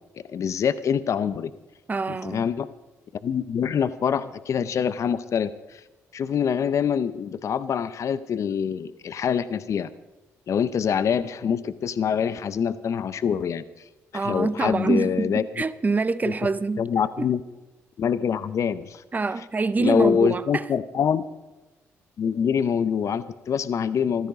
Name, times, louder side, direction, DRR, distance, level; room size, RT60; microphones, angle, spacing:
voice 1, 0.3-1.5 2.1-2.7 3.2-5.8 6.1-9.9 10.5-13.6 14.1-15.4 16.8-17.4 18.0-19.0 19.8-21.2 22.2-24.3, left 7 dB, 60° left, 0.6 m, -25 dB
voice 2, 1.9-2.5 14.1-16.9 17.2-17.3 19.1-20.6, right 3 dB, 30° right, 0.6 m, -25 dB
15.0 x 13.0 x 5.2 m
supercardioid pair, 70°, 6 cm